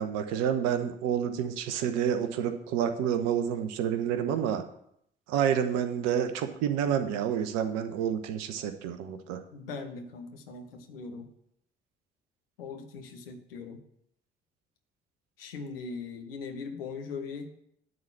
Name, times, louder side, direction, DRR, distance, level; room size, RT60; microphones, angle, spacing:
voice 1, 0.0-4.6 5.3-9.4, right 8 dB, 60° right, 9 dB, 1.1 m, -29 dB
voice 2, 9.5-11.3 12.6-13.8 15.4-17.5, left 4 dB, 75° left, 5 dB, 1.2 m, -40 dB
11.0 x 4.1 x 7.4 m, 0.72 s
figure-of-eight pair, 50°, 29 cm